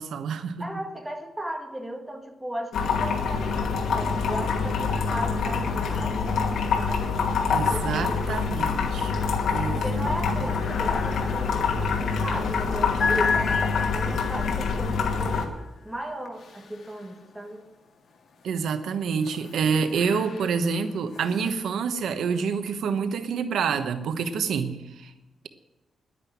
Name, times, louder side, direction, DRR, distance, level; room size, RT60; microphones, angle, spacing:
voice 1, 0.0-0.6 7.5-9.1 9.5-10.1 18.4-25.1, right 6 dB, 80° right, 9 dB, 1.1 m, -27 dB
voice 2, 0.6-7.1 7.7-8.4 9.7-15.5 15.8-17.6, right 1 dB, 5° right, 3 dB, 1.8 m, -36 dB
sound 1, 2.7-15.5, left 5 dB, 90° left, 2.4 m, -26 dB
sound 2, 3.4-4.1 4.4-17.6 18.2-22.7, left 5 dB, 60° left, 2.1 m, -36 dB
11.0 x 10.0 x 9.2 m, 0.99 s
wide cardioid pair, 170°, 0 cm